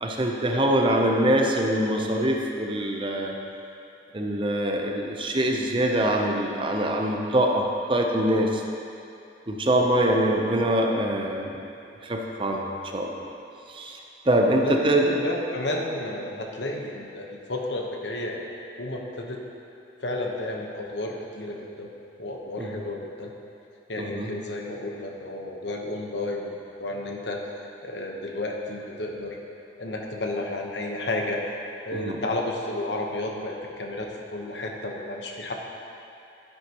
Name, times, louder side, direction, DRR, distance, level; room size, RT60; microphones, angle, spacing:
voice 1, 0.0-3.4 4.1-8.6 9.5-11.6 12.0-12.7 12.9-13.3 13.7-14.0 14.3-15.1 22.6-22.8 24.0-24.3 31.9-32.2, right 1 dB, 30° right, 1 dB, 0.7 m, -24 dB
voice 2, 14.6-18.4 18.8-19.4 20.0-21.9 22.2-23.3 23.9-29.4 29.8-35.5, left 1 dB, 80° left, 0 dB, 1.1 m, -32 dB
11.5 x 9.9 x 3.0 m, 2.7 s
head